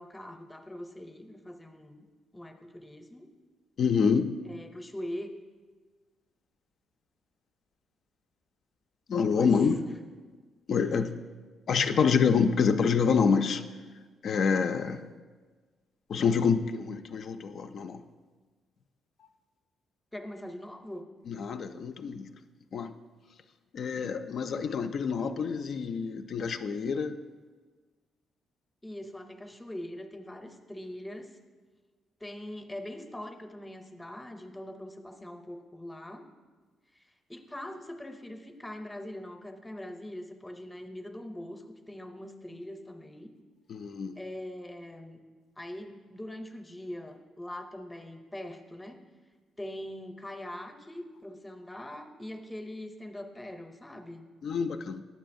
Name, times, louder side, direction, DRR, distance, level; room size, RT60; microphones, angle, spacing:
voice 1, 0.0-2.0 2.3-3.3 4.5-5.3 9.3-9.9 20.1-21.1 28.8-31.3 32.2-36.3 36.9-43.3 44.2-45.2 45.6-49.0 49.6-54.3, left 1 dB, 10° left, 6 dB, 0.6 m, -42 dB
voice 2, 3.8-4.3 9.1-9.8 10.7-11.1 11.7-13.6 14.2-15.0 16.1-18.0 21.3-22.3 22.7-22.9 23.7-27.2 43.7-44.2 54.4-55.0, left 6 dB, 60° left, 8 dB, 0.3 m, -27 dB
9.3 x 6.8 x 2.6 m, 1.4 s
cardioid pair, 90°, 0 cm